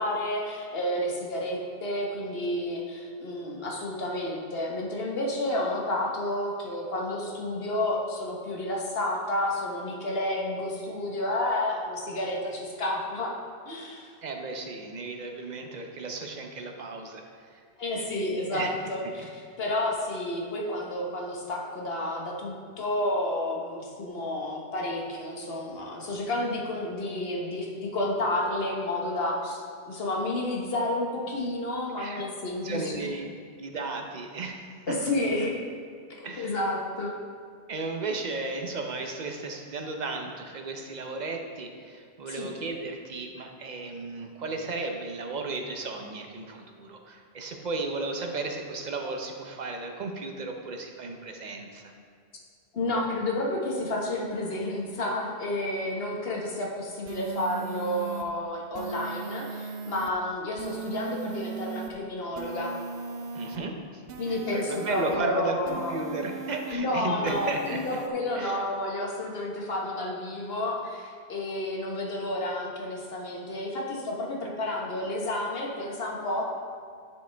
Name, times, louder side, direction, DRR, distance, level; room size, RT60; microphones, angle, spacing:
voice 1, 0.0-13.4 13.6-14.1 17.8-29.6 29.9-33.1 34.9-35.6 36.2-37.1 42.3-42.5 52.7-62.7 64.2-66.0 66.7-76.4, left 1 dB, 65° left, -1 dB, 1.3 m, -30 dB
voice 2, 14.2-17.6 18.0-18.7 19.0-19.3 32.0-32.2 32.6-33.3 33.6-35.0 36.2-36.5 37.7-51.9 63.3-67.8 68.4-68.6, right 3 dB, 45° right, 3 dB, 0.8 m, -35 dB
sound 1, 57.1-58.2 58.7-60.1 60.6-61.9 62.4-63.6 64.1-65.2 65.7-66.8 67.3-68.1, right 5 dB, 85° right, 0.9 m, -38 dB
10.0 x 5.1 x 3.4 m, 2.3 s
omnidirectional pair, 1.1 m